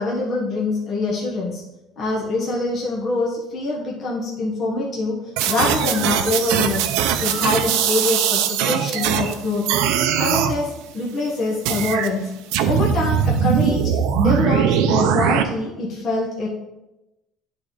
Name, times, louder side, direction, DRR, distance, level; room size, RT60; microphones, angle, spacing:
voice 1, 0.0-1.6 2.0-5.2 5.5-6.9 7.2-9.6 10.2-12.2 12.6-16.5, left 3 dB, 30° left, -4 dB, 1.2 m, -24 dB
sound 1, 5.4-9.3 9.7-10.5 11.7-12.1 12.5-15.4, right 9 dB, 85° right, 0.6 m, -20 dB
11.5 x 3.8 x 3.9 m, 0.97 s
cardioid pair, 180°, 0 cm